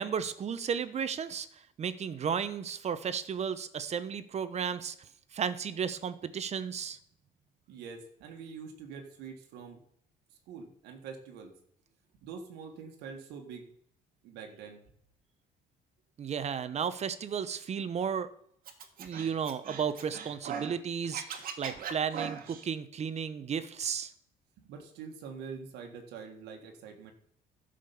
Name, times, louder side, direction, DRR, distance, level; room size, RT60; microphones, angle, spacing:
voice 1, 0.0-1.5 1.8-4.9 5.3-7.0 16.2-18.3 19.0-24.1, right 7 dB, 40° right, 13 dB, 0.8 m, -34 dB
voice 2, 7.7-9.8 10.5-11.5 12.2-13.7 14.2-14.8 24.6-27.1, right 6 dB, 90° right, 4 dB, 1.7 m, -45 dB
Scratching (performance technique), 18.7-20.8 21.0-22.6, right 7 dB, 60° right, 1.5 m, -39 dB
11.5 x 5.2 x 7.0 m, 0.67 s
cardioid pair, 110°, 17 cm